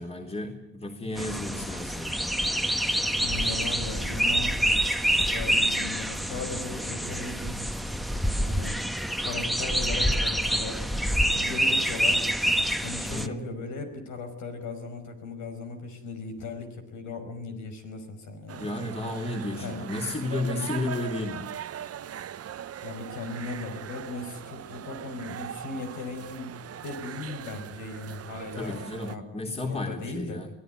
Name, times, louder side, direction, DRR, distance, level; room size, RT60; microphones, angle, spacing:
voice 1, 0.0-2.2 13.1-13.5 18.6-21.5 28.6-30.5, left 2 dB, 20° left, 2 dB, 3.6 m, -33 dB
sound 1, 1.2-13.3, equal, ahead, 1.3 m, -27 dB
voice 2, 3.2-4.6 5.2-7.8 8.4-8.8 9.2-12.2 12.8-18.7 19.4-19.8 20.4-20.7 22.8-28.8 29.0-29.3 29.6-30.4, left 3 dB, 80° left, 7 dB, 5.5 m, -38 dB
sound 2, 18.5-29.2, right 10 dB, 55° right, 0.9 m, -40 dB
23.5 x 18.0 x 9.5 m, 0.74 s
cardioid pair, 90°, 30 cm